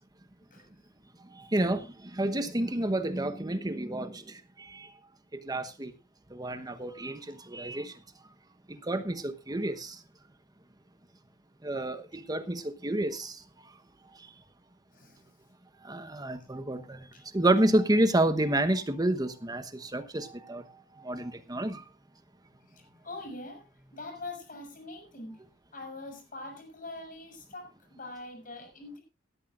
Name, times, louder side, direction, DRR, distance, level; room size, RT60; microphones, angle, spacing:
voice 1, 1.3-4.9 5.3-5.9 6.3-7.9 8.7-10.0 11.6-13.4 15.8-17.0 17.3-20.6 21.0-21.8, right 1 dB, 20° right, 10 dB, 1.1 m, -29 dB
voice 2, 14.9-15.3 22.6-25.4 25.7-29.0, left 2 dB, 45° left, 2 dB, 6.7 m, -43 dB
17.5 x 13.0 x 2.6 m, 0.28 s
head